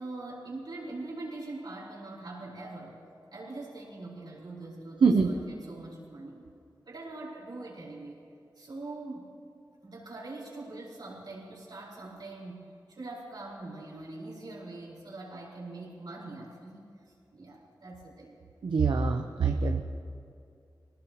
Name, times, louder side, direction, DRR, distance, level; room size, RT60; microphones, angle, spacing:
voice 1, 0.0-3.0 3.3-6.4 6.9-8.2 8.5-9.3 9.8-18.3, right 2 dB, 70° right, -5 dB, 4.7 m, -43 dB
voice 2, 5.0-5.3 18.6-19.8, right 5 dB, 85° right, 3 dB, 0.8 m, -24 dB
25.0 x 18.5 x 3.0 m, 2.4 s
wide cardioid pair, 125°, 8 cm